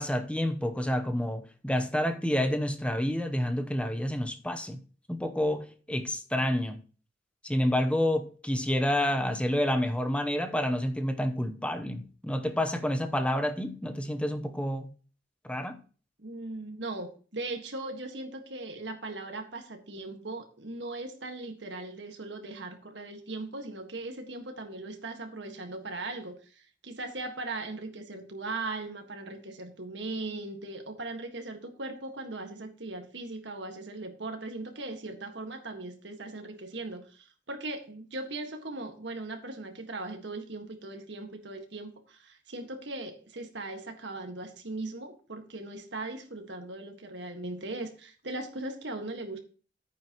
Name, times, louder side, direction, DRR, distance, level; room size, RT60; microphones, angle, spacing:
voice 1, 0.0-4.8 5.1-6.8 7.4-14.9 15.4-15.8, left 1 dB, 5° left, 0.9 m, -29 dB
voice 2, 16.2-49.4, right 2 dB, 70° right, 1.7 m, -39 dB
11.0 x 9.1 x 3.0 m
head